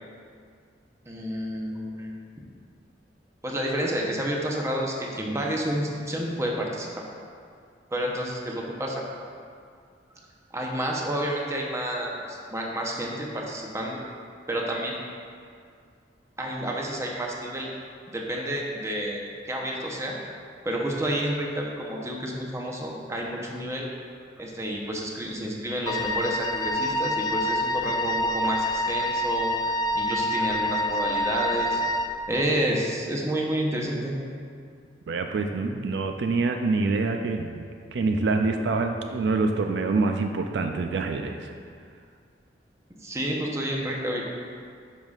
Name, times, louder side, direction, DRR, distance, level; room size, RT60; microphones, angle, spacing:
voice 1, 1.1-2.2 3.4-7.0 7.9-9.0 10.5-14.0 14.5-15.0 16.4-17.7 18.1-20.1 20.6-23.9 24.4-31.8 32.3-34.2 43.0-44.4, right 1 dB, 15° right, -2 dB, 0.8 m, -30 dB
Wind instrument woodwind instrument, 25.9-32.2, left 1 dB, 20° left, 0.3 m, -27 dB
voice 2, 35.1-37.7 37.9-41.5, right 3 dB, 70° right, 5 dB, 0.4 m, -26 dB
9.9 x 5.5 x 2.4 m, 2.2 s
head